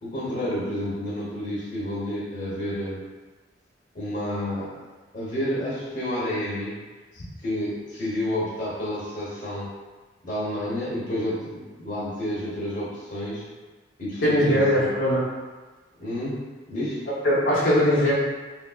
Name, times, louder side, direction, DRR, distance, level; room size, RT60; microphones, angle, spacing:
voice 1, 0.0-3.0 3.9-4.7 5.1-6.8 7.4-9.7 10.2-13.5 14.0-14.9 16.0-17.0, left 1 dB, 45° left, -8 dB, 1.0 m, -30 dB
voice 2, 14.2-15.3 17.1-18.1, equal, 85° left, -8 dB, 0.9 m, -21 dB
3.3 x 2.7 x 2.4 m, 1.3 s
head